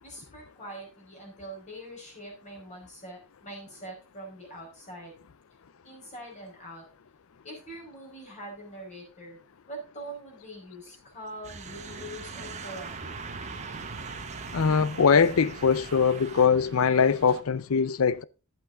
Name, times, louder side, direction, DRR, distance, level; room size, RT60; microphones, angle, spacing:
voice 1, 0.0-5.1 5.8-6.8 7.4-9.4 9.7-12.9, right 1 dB, 35° left, 5.0 m, -43 dB
sound 1, 11.4-16.5, right 4 dB, 35° right, 1.1 m, -41 dB
sound 2, 11.6-17.4, right 2 dB, 65° right, 1.4 m, -46 dB
voice 2, 14.5-18.2, left 6 dB, 80° left, 0.5 m, -22 dB
11.0 x 8.3 x 3.8 m
head